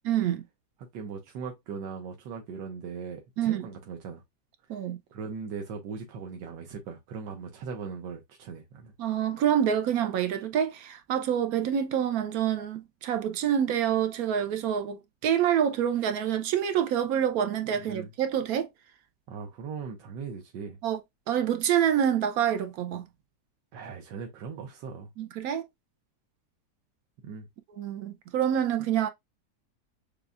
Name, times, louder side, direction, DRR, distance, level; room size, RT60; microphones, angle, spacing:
voice 1, 0.1-0.4 3.4-3.7 4.7-5.0 9.0-18.7 20.8-21.0 21.3-23.0 25.2-25.6 27.8-29.1, right 9 dB, 70° right, 0.9 m, -27 dB
voice 2, 0.8-4.2 5.1-8.9 17.7-18.1 19.3-20.8 23.7-25.1 27.2-27.5, right 5 dB, 90° right, 1.4 m, -39 dB
6.7 x 2.2 x 2.4 m
omnidirectional pair, 1.9 m